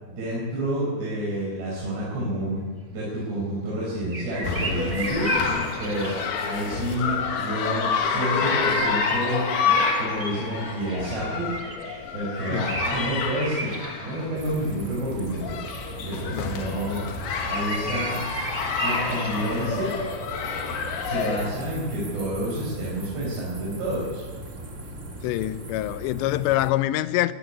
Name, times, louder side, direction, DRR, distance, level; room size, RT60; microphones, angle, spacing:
voice 1, 0.0-2.6 2.9-5.3 5.8-6.2 6.4-9.5 10.0-11.5 12.1-13.7 14.0-15.5 16.0-17.0 17.4-18.2 18.8-19.9 21.0-24.2, right 1 dB, 75° right, 7.3 m, -29 dB
sound 1, 4.1-6.7 8.3-14.6 17.2-19.7, right 3 dB, 35° right, 1.2 m, -34 dB
sound 2, 4.4-21.5, left 5 dB, 65° left, 3.7 m, -28 dB
sound 3, 14.3-26.7, right 1 dB, 50° right, 0.8 m, -39 dB
voice 2, 16.3-16.8 25.2-27.3, left 15 dB, 90° left, 3.0 m, -26 dB
18.5 x 16.5 x 9.6 m
omnidirectional pair, 5.0 m